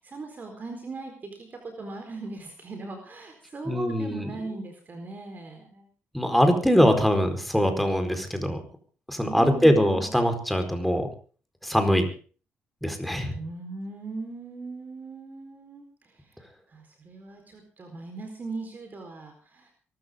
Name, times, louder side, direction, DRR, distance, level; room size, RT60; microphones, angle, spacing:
voice 1, 0.0-5.9 9.2-10.1 13.3-15.8 16.7-19.7, right 3 dB, 40° right, 4 dB, 4.3 m, -38 dB
voice 2, 3.7-4.5 6.1-8.6 9.1-11.1 11.6-12.1 12.8-13.4, equal, ahead, 6 dB, 4.5 m, -22 dB
23.5 x 13.5 x 3.8 m, 0.40 s
cardioid pair, 90°, 5 cm